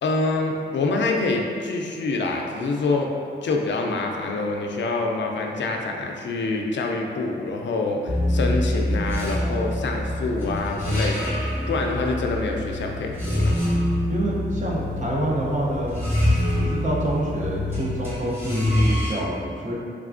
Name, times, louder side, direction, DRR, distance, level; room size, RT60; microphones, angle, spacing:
voice 1, 0.0-3.1 3.4-13.6, left 3 dB, 90° left, 1 dB, 0.4 m, -26 dB
sound 1, 8.1-19.1, left 1 dB, 10° right, 0.9 m, -25 dB
voice 2, 14.1-16.0 16.6-19.7, right 1 dB, 40° right, -4 dB, 0.6 m, -27 dB
3.5 x 3.3 x 2.5 m, 2.4 s
wide cardioid pair, 140°, 18 cm